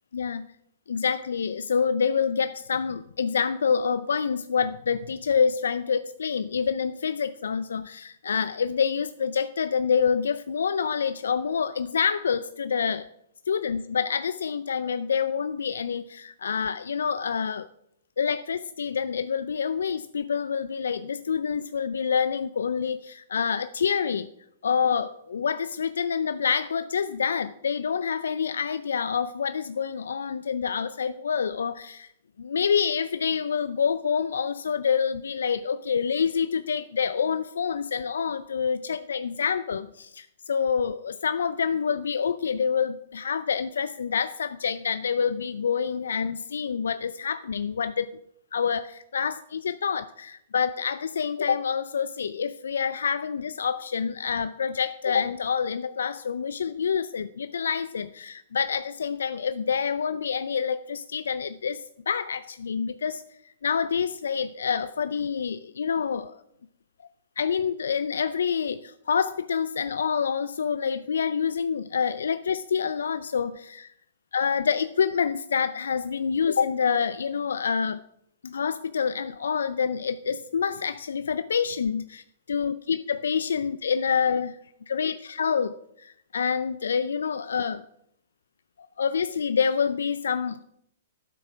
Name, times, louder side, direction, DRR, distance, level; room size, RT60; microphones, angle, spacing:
voice 1, 0.1-0.5 0.9-13.0 13.5-17.7 18.2-24.3 24.6-32.1 32.4-48.1 48.5-63.2 63.6-66.4 67.4-73.9 74.3-78.0 78.4-84.6 84.9-87.8 89.0-90.6, left 6 dB, 75° left, 14 dB, 0.4 m, -27 dB
9.2 x 7.8 x 6.0 m, 0.74 s
hypercardioid pair, 120°, 0 cm